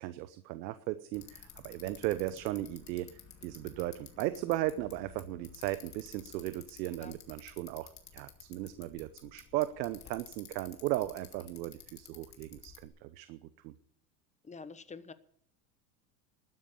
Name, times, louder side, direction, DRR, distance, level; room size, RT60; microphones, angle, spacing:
voice 1, 0.0-13.4 13.6-13.7, right 15 dB, 85° right, 13 dB, 0.9 m, -36 dB
Bicycle, 1.1-12.9, left 7 dB, 35° left, 2.5 m, -53 dB
voice 2, 14.4-15.1, left 4 dB, 15° left, 13 dB, 0.9 m, -47 dB
12.5 x 9.5 x 8.6 m, 0.66 s
supercardioid pair, 115°, 50 cm